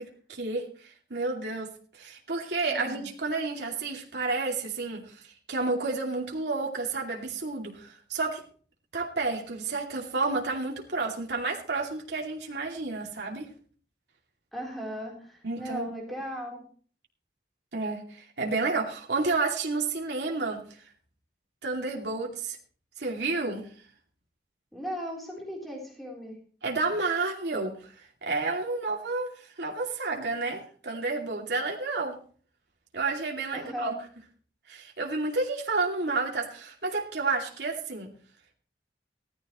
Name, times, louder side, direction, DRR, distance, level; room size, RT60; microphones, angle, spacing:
voice 1, 0.0-8.4 8.9-13.5 15.4-15.9 17.7-20.7 21.6-22.6 23.0-23.7 26.6-32.2 32.9-33.9 34.7-38.1, right 3 dB, 80° right, 0 dB, 2.6 m, -31 dB
voice 2, 2.7-3.1 14.5-16.6 24.7-26.4 33.5-34.0, equal, ahead, -1 dB, 3.7 m, -37 dB
16.5 x 13.5 x 3.1 m, 0.44 s
head